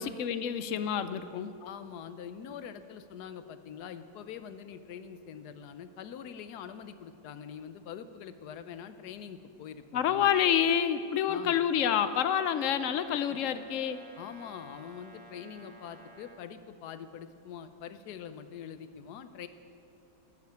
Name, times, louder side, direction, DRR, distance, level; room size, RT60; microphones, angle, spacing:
voice 1, 0.0-1.5 9.9-14.0, left 9 dB, 65° left, 12 dB, 0.9 m, -28 dB
voice 2, 1.6-10.3 11.3-11.5 13.3-13.4 14.2-19.5, left 8 dB, 80° left, 11 dB, 1.3 m, -44 dB
Brass instrument, 12.4-16.5, right 3 dB, 45° right, 1.4 m, -53 dB
12.0 x 7.5 x 9.3 m, 2.7 s
omnidirectional pair, 1.7 m